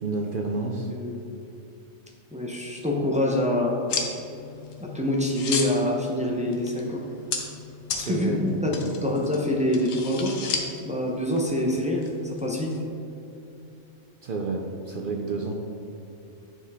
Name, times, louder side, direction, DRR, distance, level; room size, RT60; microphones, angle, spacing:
voice 1, 0.0-0.9 7.9-9.0 14.2-15.6, right 3 dB, 60° right, 1 dB, 0.5 m, -30 dB
voice 2, 2.3-3.8 4.8-7.0 7.9-10.4 10.8-12.7, left 1 dB, 10° right, -2 dB, 0.4 m, -26 dB
sound 1, 3.9-12.8, left 5 dB, 70° left, 1.1 m, -35 dB
9.4 x 4.7 x 3.5 m, 2.7 s
omnidirectional pair, 1.4 m